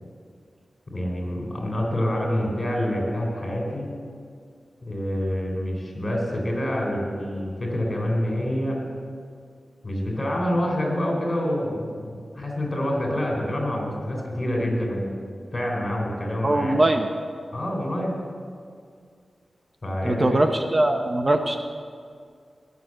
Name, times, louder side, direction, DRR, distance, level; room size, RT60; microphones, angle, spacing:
voice 1, 0.9-3.9 4.8-8.8 9.8-15.1 15.5-16.8 17.5-18.2 19.8-20.4, equal, 35° left, 0 dB, 4.0 m, -27 dB
voice 2, 16.4-17.1 20.0-21.6, right 1 dB, 30° right, 6 dB, 0.8 m, -21 dB
19.5 x 7.0 x 7.7 m, 2.2 s
wide cardioid pair, 85°, 0 cm